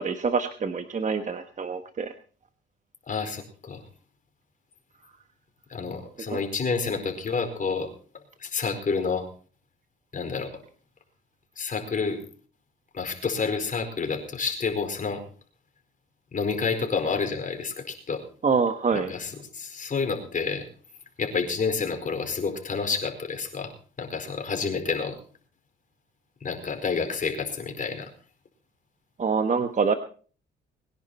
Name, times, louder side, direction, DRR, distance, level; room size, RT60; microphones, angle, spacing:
voice 1, 0.0-2.1 6.3-6.4 18.4-19.1 29.2-29.9, right 5 dB, 40° right, 7 dB, 1.3 m, -25 dB
voice 2, 3.1-3.8 5.7-7.9 8.4-9.3 10.1-10.6 11.6-12.2 12.9-15.2 16.3-18.2 18.9-20.7 21.2-23.7 24.0-25.2 26.4-28.1, left 5 dB, 40° left, 4 dB, 4.7 m, -29 dB
21.5 x 10.5 x 4.3 m, 0.42 s
cardioid pair, 90°, 20 cm